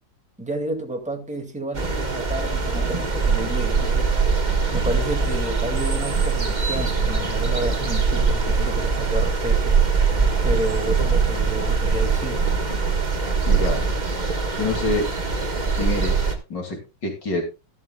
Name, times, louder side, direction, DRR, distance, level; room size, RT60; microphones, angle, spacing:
voice 1, 0.4-4.1 4.7-9.8 10.4-12.4, right 1 dB, 5° right, 2.1 m, -30 dB
sound 1, 1.7-16.4, right 5 dB, 25° right, 1.5 m, -22 dB
voice 2, 13.5-13.8 14.6-15.1 15.8-17.4, left 3 dB, 65° left, 3.2 m, -26 dB
13.0 x 12.5 x 2.3 m
omnidirectional pair, 2.0 m